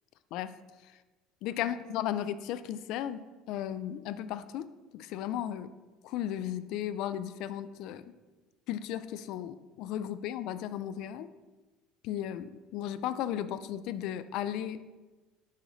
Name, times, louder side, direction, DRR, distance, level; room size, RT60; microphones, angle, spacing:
voice 1, 1.4-3.2 3.5-4.7 4.9-5.7 6.0-8.0 8.7-11.3 12.0-14.8, left 11 dB, 55° left, 13 dB, 0.3 m, -35 dB
6.4 x 5.0 x 4.0 m, 1.2 s
cardioid pair, 160°, 0 cm